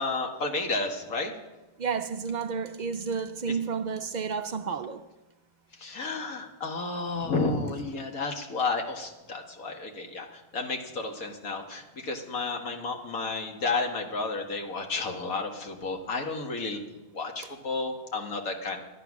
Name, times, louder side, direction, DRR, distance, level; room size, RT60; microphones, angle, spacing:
voice 1, 0.0-1.3 3.5-3.6 5.8-18.8, left 3 dB, 75° left, 1.9 m, -32 dB
voice 2, 1.8-5.1, right 5 dB, 60° right, 0.4 m, -31 dB
12.0 x 11.0 x 6.1 m
omnidirectional pair, 1.5 m